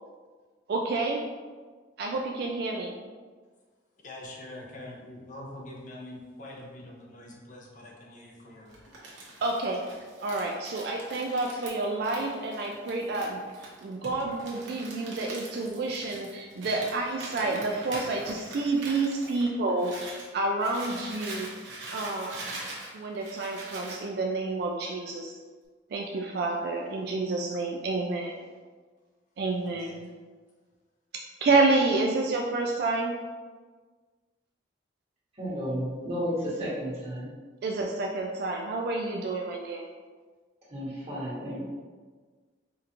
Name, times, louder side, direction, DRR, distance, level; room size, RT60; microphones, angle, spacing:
voice 1, 0.7-1.2 2.0-3.0 9.4-9.8 10.2-13.4 13.8-21.5 21.9-22.7 22.9-25.4 25.9-28.4 29.4-30.1 31.4-33.1 37.6-39.9, right 3 dB, 55° right, 0 dB, 0.3 m, -29 dB
voice 2, 4.0-8.8 29.6-30.0, left 1 dB, 40° left, -1 dB, 0.6 m, -44 dB
Crumpling crinkling, 8.7-20.3 20.6-24.0, right 2 dB, 85° right, 1.0 m, -43 dB
voice 3, 35.4-37.3 40.7-41.6, equal, 35° right, -9 dB, 1.4 m, -32 dB
4.9 x 2.5 x 2.8 m, 1.4 s
head